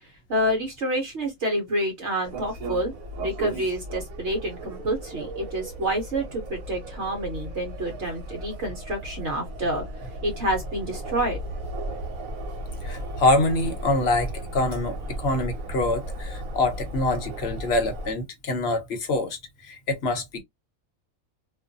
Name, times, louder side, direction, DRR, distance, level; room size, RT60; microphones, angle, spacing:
voice 1, 0.3-2.9 3.2-9.8 10.2-11.4, right 1 dB, 60° right, 1.0 m, -28 dB
sound 1, 2.2-18.1, right 1 dB, 80° right, 1.1 m, -35 dB
voice 2, 12.8-19.4 19.6-20.4, left 2 dB, 55° left, 0.9 m, -25 dB
2.5 x 2.3 x 2.5 m
omnidirectional pair, 1.4 m